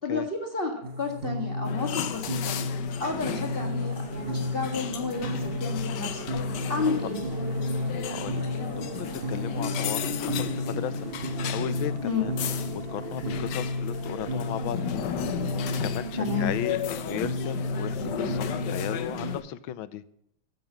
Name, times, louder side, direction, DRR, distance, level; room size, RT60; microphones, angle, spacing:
voice 1, 0.0-2.6 3.0-6.2 6.7-7.2 12.0-12.3 16.2-16.5, left 4 dB, 30° left, 1 dB, 1.7 m, -31 dB
sound 1, 0.8-19.4, left 1 dB, 45° right, 0.8 m, -32 dB
sound 2, 1.6-19.4, left 10 dB, 65° left, 1.3 m, -36 dB
voice 2, 8.0-8.5 8.8-12.3 12.7-15.1 15.3-15.4 15.8-20.0, left 12 dB, 80° left, 16 dB, 1.4 m, -36 dB
10.5 x 7.8 x 7.1 m, 0.75 s
omnidirectional pair, 2.2 m